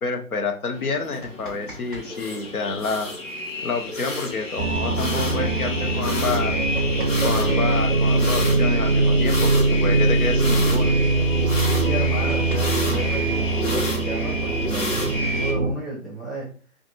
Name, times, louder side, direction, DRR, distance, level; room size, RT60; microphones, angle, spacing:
voice 1, 0.0-3.1 3.6-6.6 7.2-11.0, left 4 dB, 75° left, 5 dB, 0.9 m, -28 dB
sound 1, 0.7-15.5, left 2 dB, 60° left, 1.2 m, -30 dB
sound 2, 1.2-2.1 2.3-2.4 4.2-4.3 4.7-4.8 5.4-5.5 6.3-7.7 9.2-9.3 9.6-9.8 10.1-10.5 11.1-11.2 11.5-11.6 11.9-13.8 14.7-15.6, equal, 35° left, 1.0 m, -43 dB
sound 3, 4.6-15.7, right 2 dB, 50° right, 0.5 m, -22 dB
voice 2, 11.7-16.5, right 2 dB, ahead, -5 dB, 0.4 m, -32 dB
2.5 x 2.5 x 3.9 m, 0.40 s
figure-of-eight pair, 165°, 44 cm